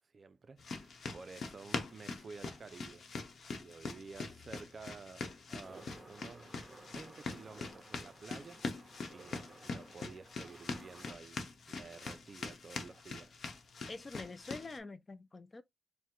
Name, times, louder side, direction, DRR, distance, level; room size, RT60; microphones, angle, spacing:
voice 1, 0.1-3.1 3.5-5.2 5.5-6.6 6.8-8.6 9.1-13.4, right 4 dB, 40° right, 0.4 m, -52 dB
sound 1, 0.6-14.8, left 4 dB, 60° left, 0.9 m, -44 dB
sound 2, 5.6-11.1, right 2 dB, 15° right, 1.5 m, -56 dB
voice 2, 13.9-15.6, left 3 dB, 30° left, 0.4 m, -46 dB
4.5 x 2.1 x 3.7 m
wide cardioid pair, 125°, 0 cm